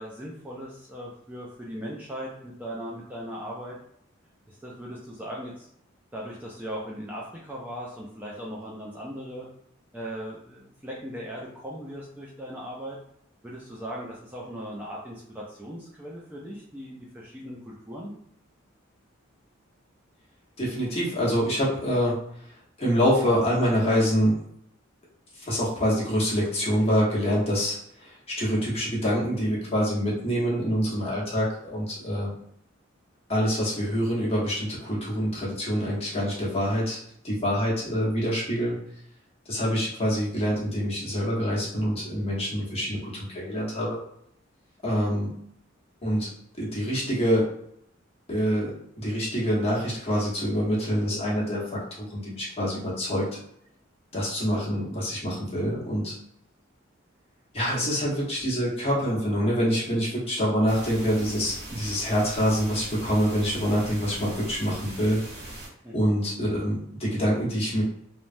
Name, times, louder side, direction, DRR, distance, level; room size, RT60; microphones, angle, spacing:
voice 1, 0.0-3.8 4.5-5.7 6.1-9.5 9.9-13.0 13.4-18.1 44.9-45.1 65.8-66.2, equal, 10° right, -4 dB, 0.4 m, -38 dB
voice 2, 20.6-22.2 22.8-24.4 25.3-32.4 33.3-37.0 37.2-38.8 39.5-44.0 44.8-45.3 46.0-46.3 46.6-47.5 48.3-48.7 49.0-53.2 54.1-56.2 57.5-65.2 65.9-67.8, equal, 30° left, -5 dB, 1.0 m, -26 dB
sound 1, 60.7-65.7, right 1 dB, 55° right, 1.0 m, -41 dB
3.2 x 2.1 x 2.6 m, 0.71 s
head